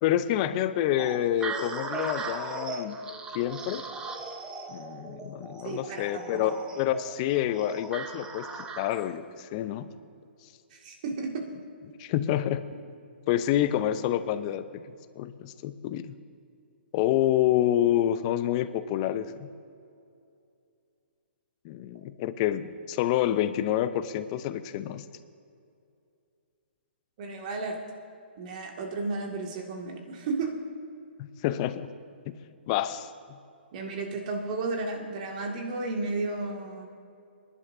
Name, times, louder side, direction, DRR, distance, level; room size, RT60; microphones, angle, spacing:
voice 1, 0.0-3.0 3.3-3.8 4.7-8.5 8.8-9.9 12.0-12.7 13.3-14.8 15.2-16.1 16.9-19.5 21.6-25.0 31.2-31.9 32.3-32.4 32.7-33.4, left 12 dB, 35° left, 13 dB, 0.6 m, -28 dB
sound 1, 1.0-9.2, right 3 dB, 10° right, 1.0 m, -38 dB
voice 2, 5.6-6.5 10.7-11.5 27.2-27.8 28.4-30.6 33.7-36.9, right 3 dB, 45° right, 2 dB, 2.0 m, -33 dB
26.0 x 11.0 x 2.7 m, 2.5 s
figure-of-eight pair, 130°, 6 cm